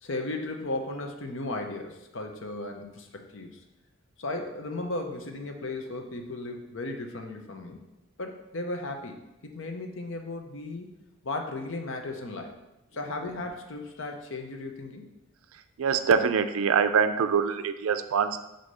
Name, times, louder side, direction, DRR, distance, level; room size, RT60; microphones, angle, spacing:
voice 1, 0.0-3.6 4.2-7.8 8.2-10.9 11.2-12.5 12.9-15.0, left 2 dB, 60° left, 4 dB, 0.7 m, -35 dB
voice 2, 15.8-18.4, right 6 dB, 75° right, 10 dB, 0.4 m, -24 dB
6.2 x 2.8 x 5.4 m, 0.94 s
head